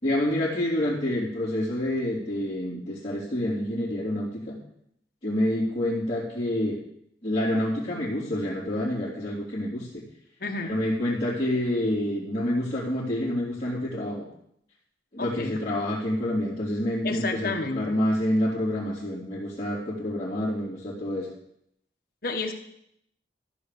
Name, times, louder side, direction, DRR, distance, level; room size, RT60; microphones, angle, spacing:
voice 1, 0.0-4.6 5.2-6.8 7.2-10.0 10.6-14.2 15.1-21.3, left 1 dB, 30° left, -11 dB, 3.4 m, -28 dB
voice 2, 10.4-10.8 15.2-15.6 17.0-17.9 22.2-22.5, left 3 dB, 55° left, 3 dB, 1.3 m, -31 dB
14.0 x 4.8 x 6.9 m, 0.74 s
head